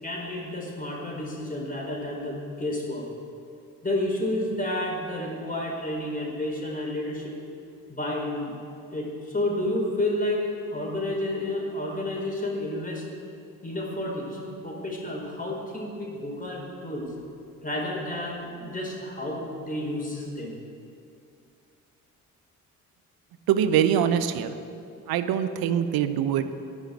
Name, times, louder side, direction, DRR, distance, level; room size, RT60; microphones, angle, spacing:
voice 1, 0.0-3.1 3.8-7.3 7.9-8.5 8.9-13.0 13.6-17.1 17.6-20.6, left 1 dB, 20° left, -2 dB, 4.7 m, -30 dB
voice 2, 23.5-24.6 25.1-26.6, right 9 dB, 50° right, 11 dB, 1.0 m, -24 dB
12.0 x 11.0 x 7.9 m, 2.5 s
figure-of-eight pair, 45°, 46 cm